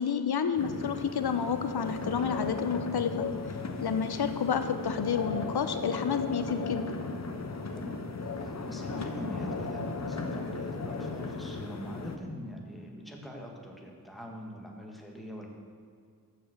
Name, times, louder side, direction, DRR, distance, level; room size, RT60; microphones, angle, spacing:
voice 1, 0.0-3.3 3.8-6.8, left 6 dB, 70° left, 9 dB, 0.7 m, -30 dB
sound 1, 0.6-12.2, left 3 dB, 45° left, 0.8 m, -36 dB
voice 2, 7.7-8.1 8.4-15.5, equal, ahead, 0 dB, 1.6 m, -43 dB
7.1 x 7.1 x 6.6 m, 2.2 s
wide cardioid pair, 60°, 39 cm